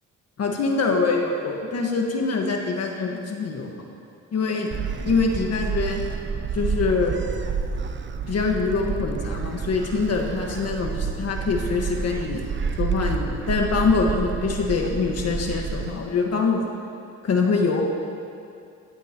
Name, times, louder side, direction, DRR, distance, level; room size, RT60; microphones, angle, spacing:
voice 1, 0.4-3.7 4.3-4.7 5.0-6.0 6.5-7.2 8.3-12.4 12.8-16.6 17.2-17.8, left 4 dB, 55° left, 1 dB, 1.6 m, -24 dB
Gull seagull, 4.7-15.9, right 5 dB, 40° right, 0.8 m, -29 dB
18.5 x 14.5 x 3.0 m, 2.5 s
cardioid pair, 90°, 30 cm